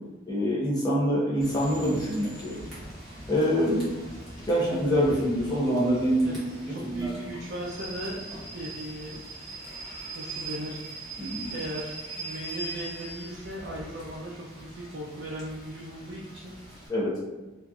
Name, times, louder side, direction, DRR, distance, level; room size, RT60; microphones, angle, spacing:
voice 1, 0.3-2.6 3.3-3.9 4.5-7.1 11.2-11.5 16.9-17.1, equal, 20° left, -6 dB, 0.8 m, -25 dB
Rain / Train, 1.4-16.9, right 2 dB, ahead, 1.0 m, -41 dB
voice 2, 6.7-9.3 10.1-10.8 11.5-16.5, right 1 dB, 60° right, -5 dB, 0.4 m, -38 dB
2.9 x 2.5 x 2.3 m, 1.2 s
head